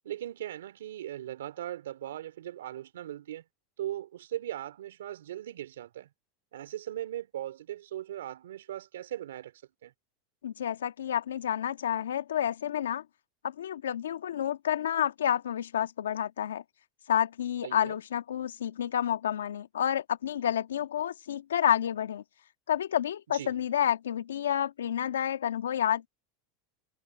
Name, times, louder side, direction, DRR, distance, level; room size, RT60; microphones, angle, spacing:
voice 1, 0.0-3.4 3.8-6.1 6.5-9.5 9.8-9.9 17.6-18.0 23.3-23.5, right 12 dB, 85° right, 2.8 m, -39 dB
voice 2, 10.4-13.0 13.4-16.6 17.1-22.2 22.7-26.1, left 10 dB, 90° left, 1.6 m, -29 dB
hypercardioid pair, 100°, 0 cm